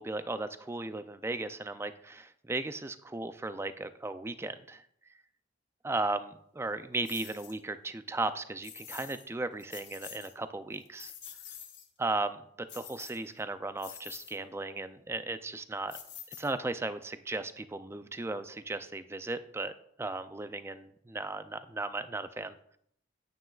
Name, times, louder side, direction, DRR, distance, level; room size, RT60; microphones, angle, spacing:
voice 1, 0.0-4.8 5.8-11.1 12.0-12.4 12.7-16.0 16.4-19.7 20.0-22.6, right 2 dB, 15° right, 11 dB, 0.4 m, -36 dB
sound 1, 7.0-7.6 8.6-9.3 9.6-10.3 10.7-11.9 12.7-13.4 13.8-14.4 15.9-16.8, left 9 dB, 70° left, 1.1 m, -47 dB
9.2 x 9.0 x 2.4 m, 0.69 s
head